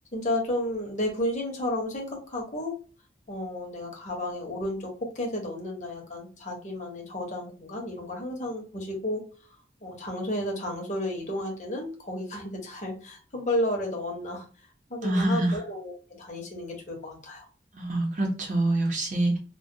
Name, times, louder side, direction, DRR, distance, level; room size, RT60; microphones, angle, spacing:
voice 1, 0.1-2.7 3.3-9.2 9.8-14.4 14.9-15.9 16.2-17.5, left 1 dB, 40° left, 1 dB, 0.8 m, -32 dB
voice 2, 15.0-15.6 17.7-19.4, right 1 dB, 45° right, 0 dB, 0.7 m, -25 dB
2.2 x 2.2 x 2.6 m, 0.38 s
head